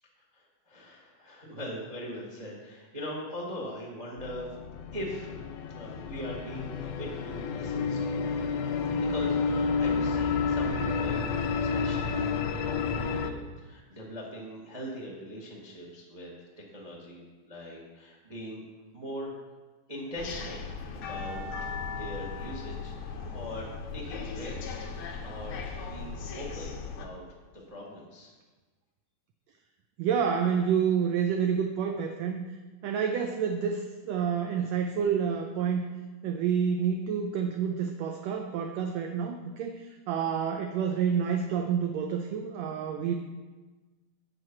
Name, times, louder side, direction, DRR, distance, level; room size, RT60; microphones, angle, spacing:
voice 1, 0.3-4.5 4.9-8.1 8.9-11.2 11.6-16.3 16.7-18.6 18.9-19.4 19.9-20.6 20.9-24.8 25.2-27.2 27.5-28.3, equal, 40° right, -2 dB, 0.5 m, -41 dB
sound 1, 4.2-13.3, left 5 dB, 90° left, 2.2 m, -30 dB
sound 2, 20.2-27.1, left 5 dB, 70° left, 1.2 m, -38 dB
voice 2, 30.0-32.4 32.8-35.9 36.2-43.1, right 7 dB, 80° right, 4 dB, 1.6 m, -28 dB
8.0 x 7.4 x 5.8 m, 1.3 s
omnidirectional pair, 3.6 m